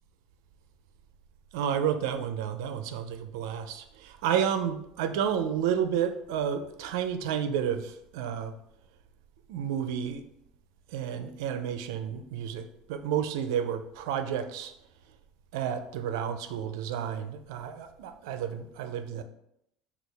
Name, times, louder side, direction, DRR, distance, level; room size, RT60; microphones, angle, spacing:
voice 1, 1.5-8.5 9.5-10.3 10.9-14.7 15.5-19.2, right 8 dB, 90° right, 10 dB, 0.4 m, -31 dB
6.2 x 2.3 x 3.4 m, 0.77 s
supercardioid pair, 125°, 2 cm